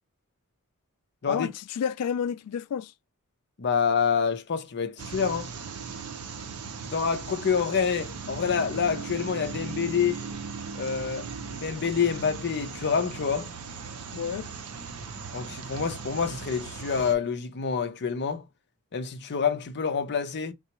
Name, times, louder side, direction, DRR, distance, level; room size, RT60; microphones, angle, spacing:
voice 1, 1.3-2.9 14.1-14.5, left 7 dB, 90° left, 0.3 m, -30 dB
voice 2, 3.6-5.5 6.9-10.3 10.8-13.5 15.3-18.5 18.9-20.5, left 6 dB, 50° left, 0.6 m, -27 dB
sound 1, 5.0-17.1, right 5 dB, 70° right, 0.6 m, -38 dB
3.9 x 2.3 x 2.8 m
head